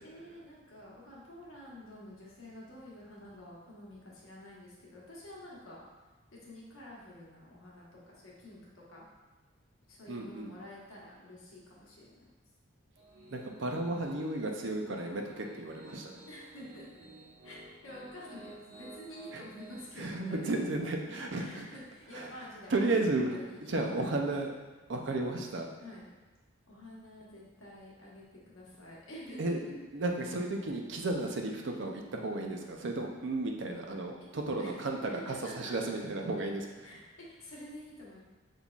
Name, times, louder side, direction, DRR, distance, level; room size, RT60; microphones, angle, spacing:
voice 1, 0.0-5.8 6.3-9.0 9.9-12.2 16.3-16.9 17.4-17.6 17.8-20.6 21.3-24.3 25.8-26.1 26.7-29.8 33.6-33.8 34.6-34.8 35.3-35.7 36.8-38.2, left 1 dB, 80° left, -5 dB, 1.2 m, -49 dB
voice 2, 10.1-10.5 13.3-16.2 19.3-19.4 20.0-21.7 22.1-22.3 22.7-23.4 23.7-24.5 24.9-25.7 29.4-36.9, right 2 dB, 60° right, 2 dB, 0.5 m, -33 dB
Piano, 13.0-19.8, right 1 dB, 85° right, 1.2 m, -53 dB
5.5 x 3.7 x 2.4 m, 1.3 s
head